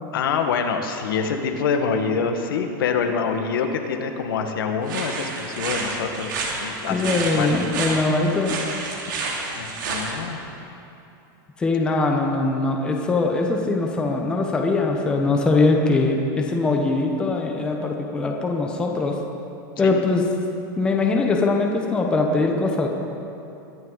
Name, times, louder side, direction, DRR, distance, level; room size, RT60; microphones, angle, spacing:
voice 1, 0.1-7.6 9.5-10.4 19.8-19.9, left 6 dB, 85° left, 4 dB, 1.5 m, -26 dB
sound 1, 4.9-10.1, right 3 dB, 60° right, 2.6 m, -29 dB
voice 2, 6.9-8.6 11.6-19.1 19.8-20.2 20.8-22.9, left 3 dB, 10° left, 1 dB, 0.8 m, -21 dB
22.0 x 11.0 x 4.0 m, 2.8 s
supercardioid pair, 180°, 11 cm